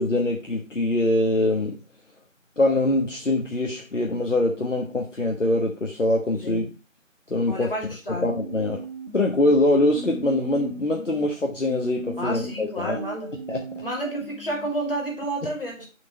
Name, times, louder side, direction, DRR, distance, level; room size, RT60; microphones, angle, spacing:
voice 1, 0.0-1.8 2.6-6.6 7.3-7.7 8.1-8.8 9.1-13.0 13.5-13.6, left 1 dB, 65° left, 1.3 m, -23 dB
voice 2, 6.4-6.7 7.5-8.3 12.2-13.4 13.8-15.9, right 1 dB, 45° left, 2.5 m, -30 dB
sound 1, 8.2-11.2 11.6-14.7, right 2 dB, 30° right, 1.5 m, -38 dB
6.2 x 3.9 x 5.7 m
figure-of-eight pair, 175°, 39 cm